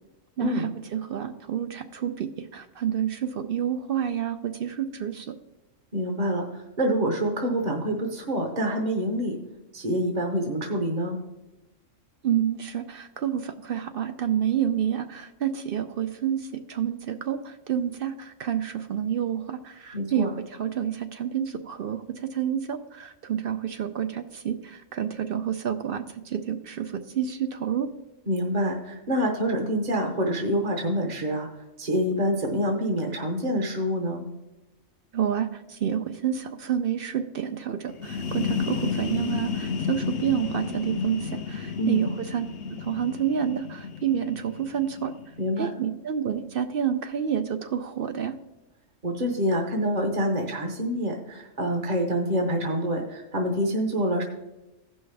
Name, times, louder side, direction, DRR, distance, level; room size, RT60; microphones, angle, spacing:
voice 1, 0.4-5.3 12.2-27.9 35.1-42.5 42.8-45.1 45.6-48.3, right 9 dB, 60° right, 8 dB, 0.6 m, -29 dB
voice 2, 5.9-9.4 9.7-11.2 19.9-20.3 28.3-31.5 31.8-34.2 41.8-42.1 45.4-45.7 49.0-54.2, equal, 40° right, 2 dB, 1.0 m, -26 dB
sound 1, 37.9-45.5, left 5 dB, 60° left, 0.9 m, -32 dB
15.5 x 5.5 x 3.4 m, 0.99 s
omnidirectional pair, 1.3 m